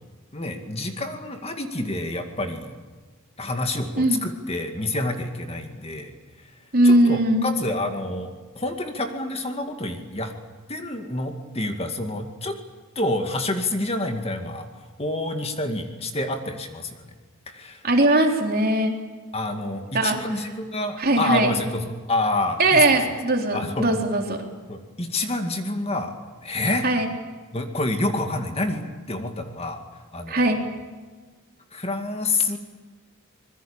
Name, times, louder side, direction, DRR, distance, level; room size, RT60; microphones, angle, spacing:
voice 1, 0.3-2.8 3.4-6.1 6.8-10.3 10.7-12.6 13.0-14.7 15.0-17.0 17.5-17.8 19.3-23.0 23.5-23.9 24.7-26.1 26.4-26.9 27.5-29.8 30.1-30.6 31.7-32.6, left 2 dB, 25° left, 5 dB, 2.1 m, -28 dB
voice 2, 6.7-7.5 17.8-19.0 19.9-20.2 21.0-21.5 22.6-24.4 26.8-27.1 30.3-30.6, right 1 dB, 45° right, 2 dB, 3.9 m, -20 dB
26.0 x 21.0 x 8.8 m, 1.4 s
head